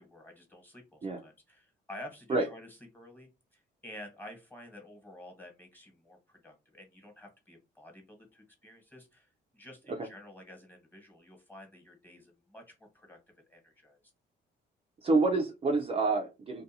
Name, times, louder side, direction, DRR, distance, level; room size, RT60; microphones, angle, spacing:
voice 1, 0.0-13.2 13.5-14.0, left 1 dB, 10° left, 2 dB, 1.2 m, -51 dB
voice 2, 15.0-16.6, right 3 dB, 30° right, 2 dB, 0.4 m, -27 dB
2.5 x 2.2 x 2.7 m, 0.26 s
cardioid pair, 90°, 20 cm